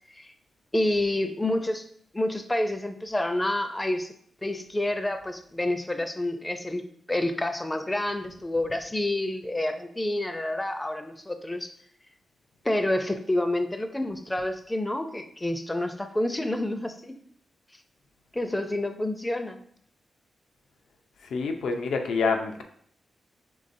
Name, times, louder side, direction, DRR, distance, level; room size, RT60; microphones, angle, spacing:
voice 1, 0.7-1.8 2.1-4.1 4.4-6.8 7.1-11.7 12.6-17.1 18.3-19.6, left 1 dB, 10° left, 8 dB, 0.4 m, -28 dB
voice 2, 21.2-22.6, left 4 dB, 85° left, 5 dB, 0.5 m, -27 dB
5.4 x 3.4 x 2.6 m, 0.64 s
wide cardioid pair, 125°, 0 cm